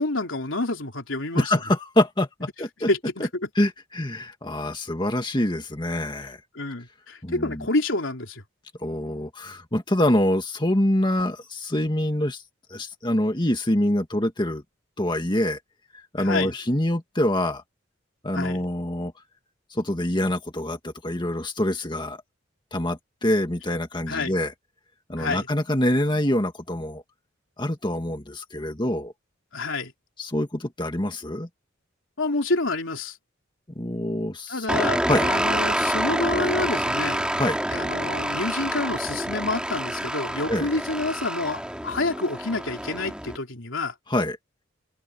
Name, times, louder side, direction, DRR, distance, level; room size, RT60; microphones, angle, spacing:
voice 1, 0.0-1.6 2.9-3.3 6.5-8.4 16.2-16.5 18.3-18.7 24.1-24.3 25.2-25.5 29.5-29.9 32.2-33.2 34.5-37.2 37.7-43.9, left 2 dB, 75° left, 3.4 m, -28 dB
voice 2, 1.3-2.9 3.2-3.3 3.6-6.4 7.2-7.7 8.8-12.4 12.7-14.6 15.0-15.6 15.9-17.6 18.2-19.1 19.7-22.2 22.7-24.5 25.1-27.0 27.6-29.1 30.2-31.5 33.8-34.8 35.1-35.3 37.4-37.6 40.5-40.7 44.1-44.4, left 1 dB, 25° left, 2.0 m, -25 dB
sound 1, 34.7-43.4, right 1 dB, 5° right, 2.7 m, -27 dB
open air
head